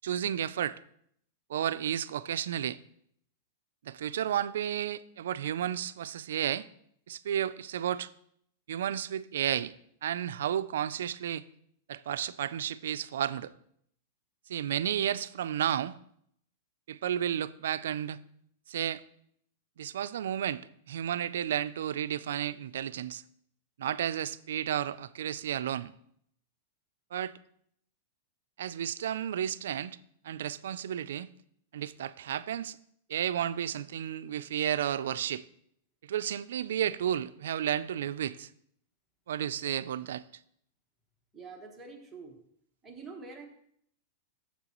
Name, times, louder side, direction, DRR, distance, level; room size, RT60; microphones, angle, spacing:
voice 1, 0.0-0.8 1.5-2.8 3.8-6.7 7.1-8.1 8.7-9.7 10.0-11.4 11.9-13.5 14.5-16.0 16.9-18.2 18.7-19.0 19.8-23.2 23.8-25.9 27.1-27.4 28.6-30.0 30.2-31.3 31.7-32.8 33.1-35.4 36.0-38.5 39.3-40.2, right 10 dB, 80° right, 0.3 m, -32 dB
voice 2, 41.3-42.4 42.8-43.5, right 4 dB, 5° right, 1.2 m, -46 dB
10.0 x 7.2 x 3.0 m
supercardioid pair, 165°, 0 cm